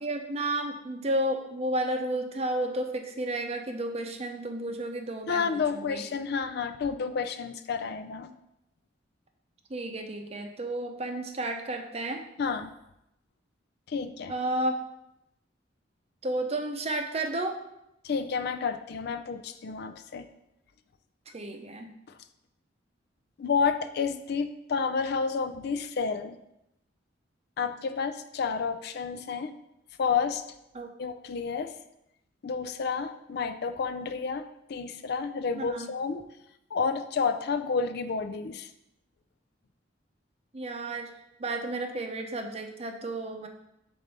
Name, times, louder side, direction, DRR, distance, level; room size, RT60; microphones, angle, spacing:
voice 1, 0.0-6.1 9.7-12.2 14.3-14.8 16.2-17.6 21.3-21.9 30.7-30.9 35.6-35.9 40.5-41.1 41.4-43.5, right 1 dB, 35° right, 4 dB, 0.6 m, -32 dB
voice 2, 5.3-8.3 12.4-12.7 13.9-14.3 18.0-20.3 23.4-26.4 27.6-29.5 30.0-30.4 31.0-31.7 32.4-36.2 36.7-38.7, left 5 dB, 60° left, 10 dB, 0.4 m, -30 dB
7.6 x 2.7 x 5.4 m, 0.84 s
head